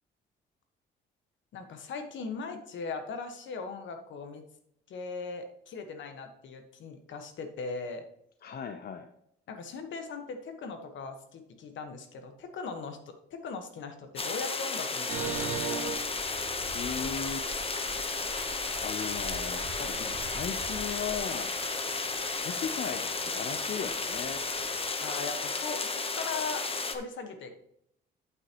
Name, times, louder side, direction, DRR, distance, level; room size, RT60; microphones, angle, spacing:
voice 1, 1.5-4.4 4.9-8.0 9.5-16.0 25.0-27.5, left 4 dB, 70° left, 7 dB, 1.4 m, -39 dB
voice 2, 8.4-9.1 16.7-17.5 18.8-21.5 22.1-24.4, left 7 dB, 50° left, 7 dB, 0.7 m, -37 dB
sound 1, 14.2-27.0, left 4 dB, 30° left, 1.0 m, -33 dB
sound 2, 15.1-24.9, right 6 dB, 75° right, 1.7 m, -42 dB
8.5 x 8.1 x 3.0 m, 0.73 s
cardioid pair, 90°, 20 cm